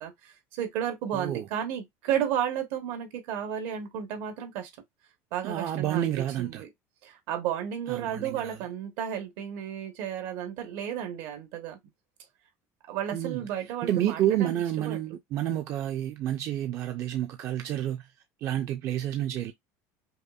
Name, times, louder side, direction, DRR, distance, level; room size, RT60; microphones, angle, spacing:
voice 1, 0.0-4.7 5.3-6.1 6.4-6.7 7.0-11.8 12.9-15.0, right 9 dB, 75° right, 1.1 m, -33 dB
voice 2, 1.1-1.5 5.4-6.6 7.9-8.6 13.1-13.5 13.8-18.1 18.4-19.5, right 12 dB, 45° right, 0.4 m, -29 dB
5.4 x 2.1 x 2.4 m
cardioid pair, 160°, 7 cm